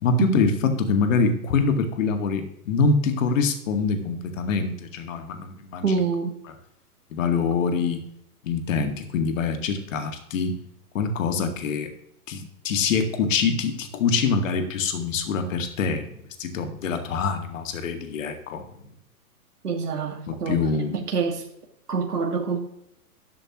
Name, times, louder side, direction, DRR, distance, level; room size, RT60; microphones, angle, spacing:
voice 1, 0.0-5.8 7.1-8.0 8.4-10.6 10.9-11.9 12.3-16.1 16.4-18.7 20.3-21.0, left 4 dB, 55° left, 7 dB, 2.1 m, -24 dB
voice 2, 5.8-6.3 19.6-20.6 20.9-21.5 21.9-22.6, right 5 dB, 80° right, 2 dB, 2.2 m, -26 dB
12.5 x 12.0 x 3.1 m, 0.76 s
hypercardioid pair, 125°, 46 cm